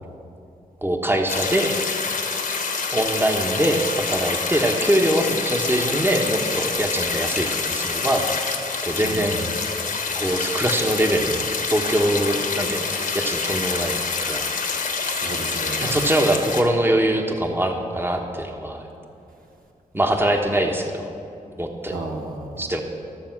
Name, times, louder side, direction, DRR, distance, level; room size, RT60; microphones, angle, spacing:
voice 1, 0.8-1.8 2.9-8.3 8.8-9.4 10.1-14.5 15.8-18.9 19.9-21.1 21.6-22.0 22.6-22.8, right 1 dB, 15° right, 3 dB, 1.2 m, -23 dB
sound 1, 1.3-16.6, left 4 dB, 65° left, 1.3 m, -26 dB
voice 2, 9.0-9.5 15.1-15.9 21.9-22.7, right 2 dB, 70° right, 1 dB, 1.4 m, -33 dB
13.5 x 6.9 x 6.0 m, 2.7 s
cardioid pair, 55°, 15 cm